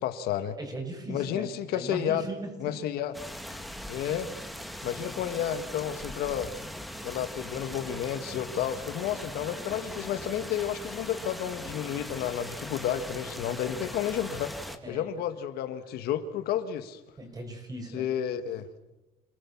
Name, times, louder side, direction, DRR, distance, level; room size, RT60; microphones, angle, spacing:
voice 1, 0.0-0.6 1.1-2.2 2.6-3.1 3.9-4.3 4.8-6.5 7.0-14.5 14.9-17.0 17.9-18.7, left 10 dB, 80° left, 9 dB, 1.7 m, -31 dB
voice 2, 0.6-1.5 1.7-2.7 3.5-3.7 14.8-15.1 17.2-18.0, right 2 dB, 25° right, 4 dB, 6.4 m, -38 dB
sound 1, 3.1-14.8, equal, ahead, 2.0 m, -40 dB
27.0 x 19.0 x 7.3 m, 1.0 s
cardioid pair, 125°, 16 cm